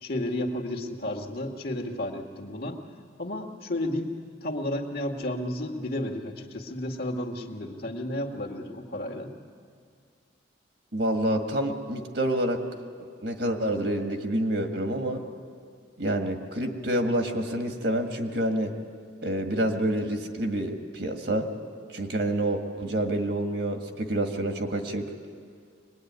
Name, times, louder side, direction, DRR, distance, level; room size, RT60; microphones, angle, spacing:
voice 1, 0.0-2.8 3.2-9.3, left 1 dB, 50° left, 1 dB, 2.0 m, -32 dB
voice 2, 10.9-12.6 13.2-15.2 16.0-18.7 19.2-21.5 21.9-25.1, right 1 dB, 55° right, 4 dB, 2.0 m, -28 dB
24.5 x 21.0 x 9.6 m, 2.1 s
head